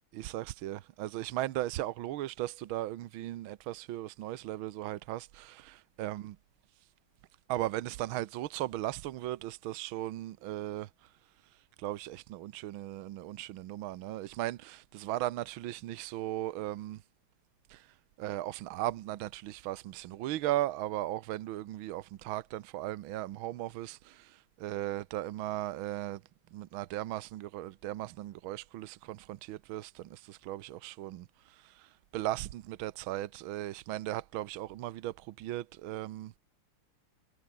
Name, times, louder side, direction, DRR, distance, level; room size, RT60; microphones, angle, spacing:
voice 1, 0.1-6.4 7.5-10.9 11.8-17.0 17.7-17.8 18.2-26.2 26.5-31.2 32.1-36.3, right 14 dB, 75° right, 1.6 m, -37 dB
omnidirectional pair, 2.3 m